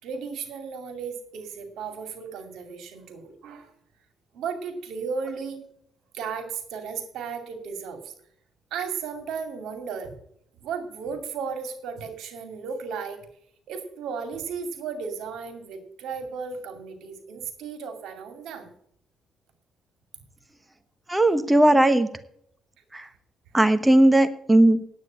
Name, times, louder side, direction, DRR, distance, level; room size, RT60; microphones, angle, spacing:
voice 1, 0.0-3.7 4.3-5.6 6.1-8.1 8.7-10.1 10.6-13.2 13.7-18.7 23.0-23.1, right 5 dB, 85° right, 8 dB, 2.2 m, -35 dB
voice 2, 21.1-22.1 22.9-23.0 23.5-24.8, right 1 dB, 10° right, 11 dB, 1.0 m, -18 dB
9.6 x 8.5 x 8.5 m, 0.69 s
cardioid pair, 90°, 0 cm